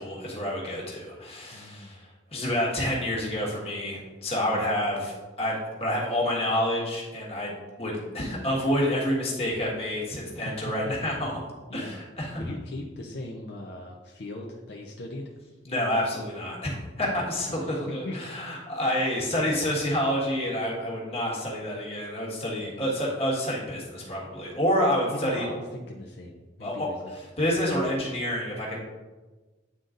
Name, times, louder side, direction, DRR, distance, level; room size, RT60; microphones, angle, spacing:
voice 1, 0.0-11.4 11.7-12.4 15.6-25.5 26.6-28.8, equal, 30° left, -4 dB, 1.4 m, -28 dB
voice 2, 1.5-2.0 4.4-4.7 10.8-11.2 11.7-12.0 12.3-15.2 17.0-17.6 18.0-18.7 22.6-23.0 25.1-27.1, left 1 dB, 65° left, 0 dB, 0.6 m, -39 dB
9.6 x 3.9 x 2.5 m, 1.3 s
head